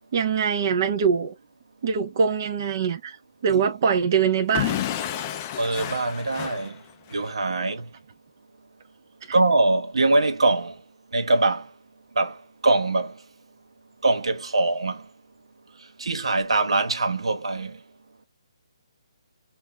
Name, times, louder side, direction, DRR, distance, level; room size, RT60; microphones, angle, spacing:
voice 1, 0.1-1.3 1.8-3.2 3.4-4.8, right 6 dB, 35° right, 0.5 m, -23 dB
Explosion / Shatter, 4.5-7.3, left 11 dB, 20° left, 0.3 m, -30 dB
voice 2, 5.6-6.8 7.1-7.9 9.3-10.8 11.1-11.7 12.2-12.4 12.6-13.1 14.0-15.0 16.0-17.8, right 2 dB, 85° right, 1.2 m, -23 dB
5.6 x 2.4 x 2.2 m
hypercardioid pair, 170°, 3 cm